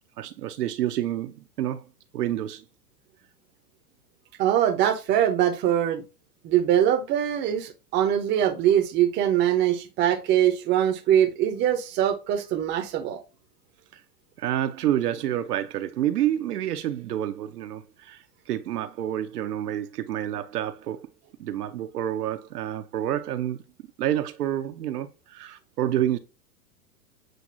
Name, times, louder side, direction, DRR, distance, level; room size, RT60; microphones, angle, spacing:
voice 1, 0.2-1.9 2.1-2.6 13.9-14.0 14.4-18.2 18.5-21.1 21.4-23.6 24.0-26.2, right 12 dB, 75° right, 0.7 m, -28 dB
voice 2, 4.4-6.0 6.4-13.2, right 10 dB, 25° right, 0.6 m, -23 dB
7.7 x 2.6 x 2.5 m
hypercardioid pair, 110°, 47 cm